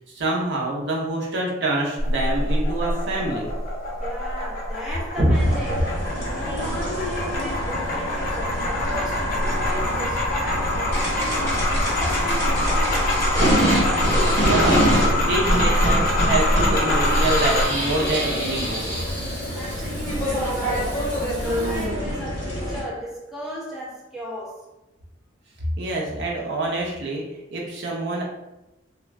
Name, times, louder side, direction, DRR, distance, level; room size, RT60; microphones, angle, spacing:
voice 1, 0.1-3.5 5.2-5.3 14.3-18.8 25.8-27.2 27.5-28.2, right 2 dB, 60° right, 0.7 m, -26 dB
sound 1, 2.0-17.7, left 1 dB, 50° left, 0.6 m, -24 dB
voice 2, 4.0-6.0 6.3-13.4 19.5-24.7, equal, ahead, 0.6 m, -35 dB
sound 2, 5.3-22.8, equal, 15° left, 1.3 m, -26 dB
Water tap faucet / Liquid, 16.1-21.8, equal, 20° right, 1.0 m, -38 dB
2.3 x 2.3 x 3.2 m
head